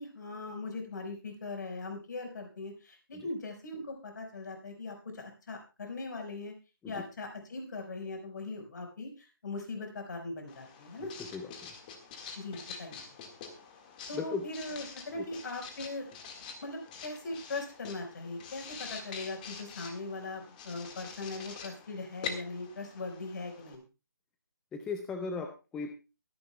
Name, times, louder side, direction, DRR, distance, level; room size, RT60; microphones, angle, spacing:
voice 1, 0.0-6.5 6.8-11.1 12.4-13.0 14.1-16.1 16.6-23.8, left 3 dB, 50° left, 3 dB, 4.8 m, -40 dB
Writing, 10.5-23.8, left 6 dB, 20° left, 1.8 m, -46 dB
voice 2, 11.0-11.7 14.1-14.4 15.2-15.3 24.7-25.9, left 5 dB, 5° left, 5 dB, 0.5 m, -38 dB
23.0 x 10.0 x 2.3 m, 0.30 s
figure-of-eight pair, 155°, 12 cm